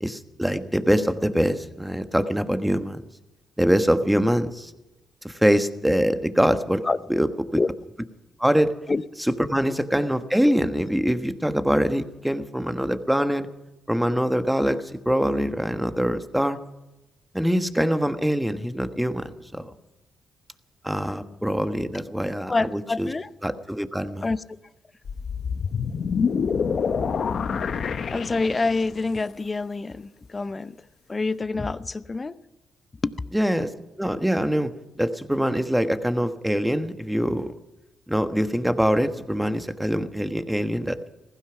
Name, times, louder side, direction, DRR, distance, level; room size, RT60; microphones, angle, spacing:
voice 1, 0.0-3.0 3.6-4.7 5.2-6.8 7.1-7.6 8.4-8.7 9.3-13.5 13.9-16.6 17.3-19.7 20.8-23.1 23.4-24.3 33.3-33.7 34.0-34.7 35.0-37.5 38.1-41.1, equal, 5° right, 1.4 m, -24 dB
voice 2, 6.8-7.2 7.5-7.7 8.9-9.0 22.5-23.3 24.2-24.4 28.1-30.8 31.1-32.4 33.0-33.1, left 3 dB, 30° left, 0.7 m, -26 dB
sound 1, 25.1-29.0, left 6 dB, 60° left, 1.0 m, -27 dB
16.0 x 15.5 x 5.9 m
supercardioid pair, 60°, 0 cm